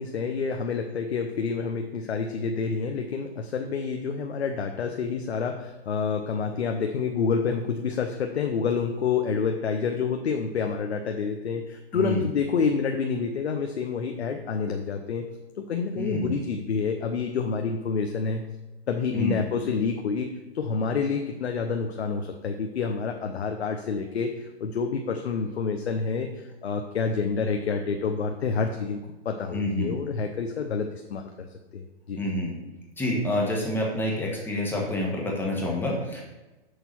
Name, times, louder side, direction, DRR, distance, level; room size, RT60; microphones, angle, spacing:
voice 1, 0.0-15.2 15.6-18.4 18.9-20.3 20.5-29.0 29.2-31.5 31.7-32.2, left 5 dB, 85° left, 4 dB, 0.9 m, -28 dB
voice 2, 11.9-12.3 16.0-16.4 19.1-19.4 29.5-30.0 32.2-32.5 33.0-36.2, left 1 dB, 5° left, -2 dB, 1.3 m, -28 dB
6.8 x 4.5 x 5.9 m, 1.1 s
hypercardioid pair, 150°, 31 cm